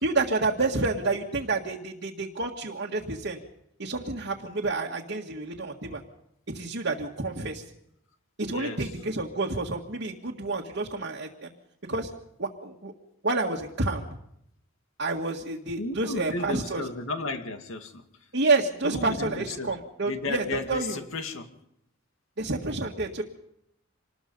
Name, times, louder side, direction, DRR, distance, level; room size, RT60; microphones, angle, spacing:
voice 1, 0.0-3.4 3.8-6.0 6.5-7.6 8.4-11.5 11.9-12.1 12.4-12.9 13.2-14.1 15.0-16.8 18.3-21.0 22.4-23.2, right 3 dB, 60° right, -2 dB, 1.8 m, -29 dB
voice 2, 8.5-8.9 15.8-18.0 18.8-19.8 20.1-21.5, left 3 dB, 75° left, 6 dB, 2.2 m, -34 dB
26.5 x 20.0 x 5.4 m, 0.77 s
head